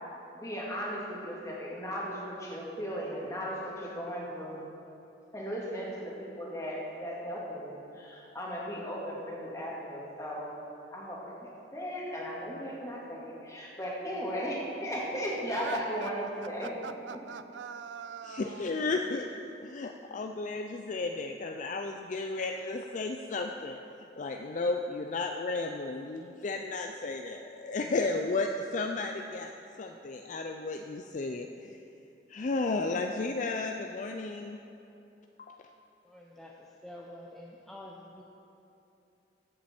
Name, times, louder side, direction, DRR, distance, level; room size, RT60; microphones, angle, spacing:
voice 1, 0.3-4.6 5.3-10.5 10.9-17.2, equal, 20° left, -4 dB, 2.1 m, -36 dB
sound 1, 15.5-19.0, right 7 dB, 80° right, 0.4 m, -42 dB
voice 2, 18.2-19.3 19.6-23.8 24.2-29.5 29.8-31.8 32.3-34.6 35.4-35.5, left 3 dB, 45° left, 4 dB, 0.4 m, -33 dB
voice 3, 36.0-38.2, left 1 dB, ahead, -3 dB, 0.6 m, -48 dB
14.5 x 7.5 x 4.4 m, 2.8 s
head